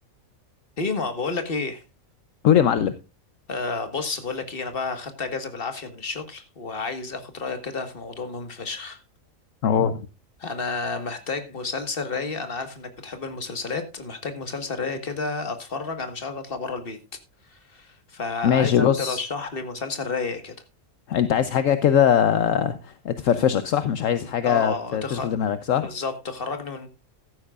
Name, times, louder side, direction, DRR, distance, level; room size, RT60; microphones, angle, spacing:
voice 1, 0.8-1.8 3.5-9.0 10.4-17.0 17.5-20.5 24.4-25.3 25.8-26.9, left 4 dB, 40° left, 1.8 m, -31 dB
voice 2, 2.4-2.9 9.6-10.1 18.4-19.2 21.1-25.9, left 9 dB, 70° left, 1.1 m, -21 dB
15.0 x 12.5 x 2.4 m
omnidirectional pair, 1.4 m